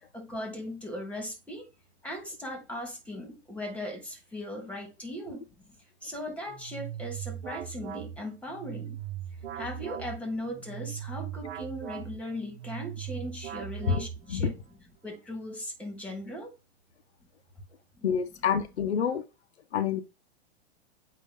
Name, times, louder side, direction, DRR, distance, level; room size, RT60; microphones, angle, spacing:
voice 1, 0.0-1.7 2.0-5.4 6.0-9.0 9.6-14.5 15.0-16.5 18.0-18.1, left 1 dB, 5° left, 2.1 m, -38 dB
sound 1, 6.5-14.5, right 10 dB, 70° right, 1.2 m, -39 dB
voice 2, 18.0-19.2 19.7-20.0, left 7 dB, 90° left, 1.0 m, -27 dB
8.5 x 2.9 x 3.8 m
hypercardioid pair, 120°, 32 cm